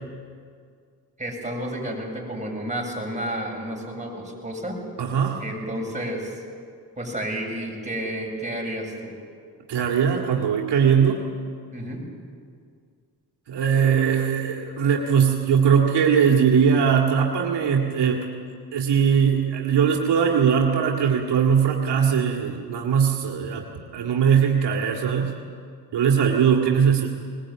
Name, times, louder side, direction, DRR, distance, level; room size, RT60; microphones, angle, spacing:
voice 1, 1.2-4.8 5.4-6.4 7.0-9.1 11.7-12.1, right 1 dB, 20° right, -1 dB, 7.5 m, -31 dB
voice 2, 5.0-5.4 9.7-11.2 13.5-18.2 18.7-23.6 23.9-25.3 25.9-27.2, right 7 dB, 80° right, 1 dB, 2.1 m, -20 dB
21.0 x 20.5 x 8.7 m, 2.1 s
cardioid pair, 70°, 40 cm